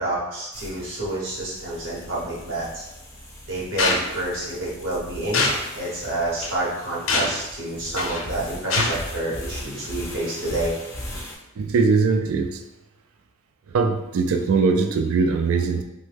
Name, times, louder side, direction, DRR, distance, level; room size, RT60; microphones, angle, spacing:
voice 1, 0.0-2.8 3.5-5.5 5.7-10.7, right 2 dB, 60° right, -6 dB, 0.9 m, -28 dB
sound 1, 0.5-11.3, left 1 dB, 15° left, 0.4 m, -39 dB
sound 2, 3.8-4.0 5.3-5.6 6.4-6.5 7.1-7.4 8.0-8.2 8.7-8.9, left 3 dB, 75° left, 0.5 m, -22 dB
voice 2, 11.6-12.6 13.7-15.8, right 4 dB, 85° right, 6 dB, 0.3 m, -21 dB
3.1 x 2.2 x 3.2 m, 0.97 s
head